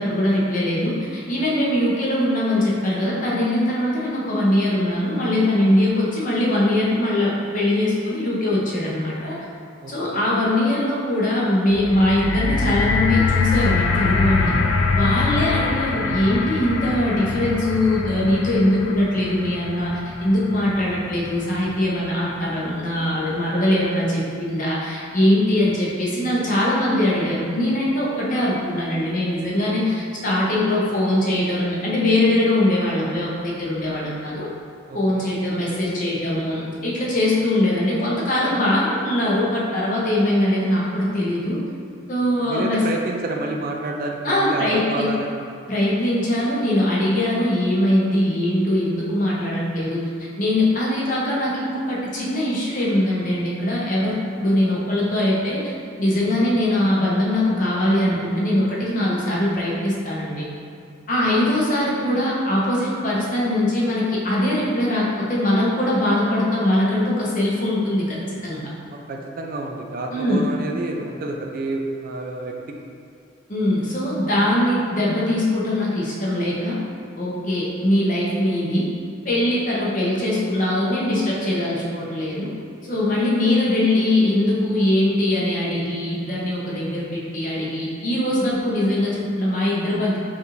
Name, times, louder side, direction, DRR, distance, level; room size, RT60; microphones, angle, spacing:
voice 1, 0.0-9.4 9.9-14.5 14.9-34.5 34.9-41.6 42.1-42.8 44.2-45.1 45.7-55.7 56.0-60.5 61.1-68.6 70.1-70.5 73.5-76.8 77.2-78.9 79.2-82.5 82.8-90.2, left 1 dB, 40° left, -5 dB, 0.8 m, -21 dB
voice 2, 9.8-10.2 15.4-15.7 34.9-35.3 42.4-45.4 68.9-72.5, right 2 dB, 45° right, 1 dB, 0.3 m, -29 dB
sound 1, 11.7-21.9 22.7-22.8, left 4 dB, 80° left, 0.4 m, -24 dB
5.3 x 2.5 x 3.1 m, 2.4 s
head